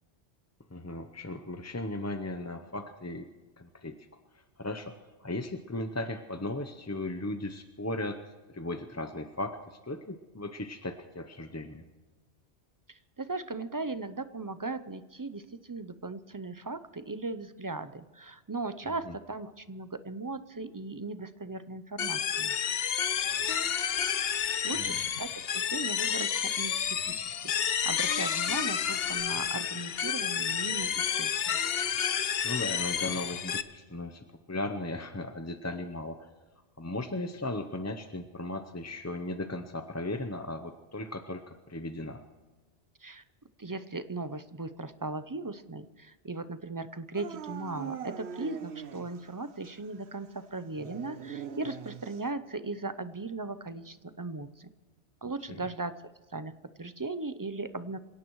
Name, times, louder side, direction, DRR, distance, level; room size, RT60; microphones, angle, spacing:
voice 1, 0.7-3.3 3.6-3.9 4.3-4.9 5.2-8.2 8.5-11.8 19.0-19.1 24.7-25.0 32.4-36.3 36.8-42.2 55.5-55.7, left 2 dB, 20° left, 7 dB, 0.6 m, -37 dB
voice 2, 12.9-22.6 24.6-31.6 43.0-43.2 43.6-54.7 55.2-55.9 56.3-58.0, right 3 dB, 30° right, 12 dB, 0.4 m, -38 dB
sound 1, 22.0-33.6, left 8 dB, 60° left, 0.9 m, -30 dB
Dog / Siren, 47.1-49.3 49.6-49.7 50.7-52.3, right 7 dB, 70° right, 1.1 m, -41 dB
27.0 x 17.0 x 3.1 m, 1.3 s
omnidirectional pair, 1.2 m